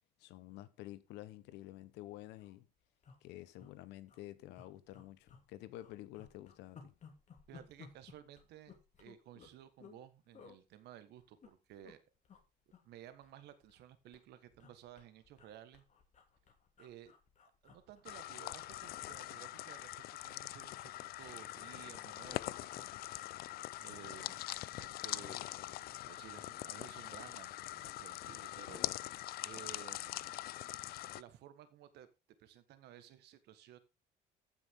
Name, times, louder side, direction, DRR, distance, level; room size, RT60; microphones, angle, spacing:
voice 1, 0.2-2.7 3.2-6.9, left 15 dB, 90° left, 1.0 m, -50 dB
sound 1, 2.4-2.5 3.0-3.7 4.0-4.2 4.5-5.5 5.8-10.0 10.3-10.6 11.2-11.9 12.2-12.4 12.7-13.8 14.1-18.7 19.0-19.2, left 6 dB, 45° left, 2.5 m, -59 dB
voice 2, 7.5-12.0 12.8-15.8 16.8-17.1 17.6-22.9 23.2-23.4 23.8-24.4 24.8-30.5 31.1-32.1 32.4-33.8, right 11 dB, 80° right, 1.5 m, -56 dB
sound 2, 18.1-31.2, left 15 dB, 65° left, 0.4 m, -43 dB
14.5 x 6.2 x 3.7 m
cardioid pair, 110°, 17 cm